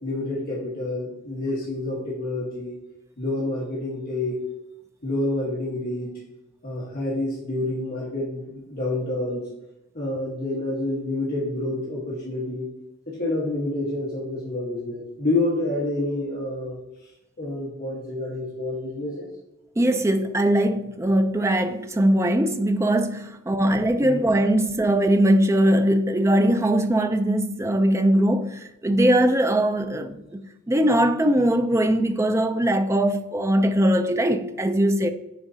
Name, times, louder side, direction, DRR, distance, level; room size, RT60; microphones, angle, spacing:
voice 1, 0.0-2.8 3.2-4.4 5.0-6.1 6.6-9.4 9.9-12.7 13.1-19.3 23.6-24.2, left 2 dB, 45° left, 1.3 m, -28 dB
voice 2, 19.8-30.4 30.7-35.1, right 1 dB, 15° right, 0.3 m, -21 dB
9.5 x 4.0 x 2.7 m
head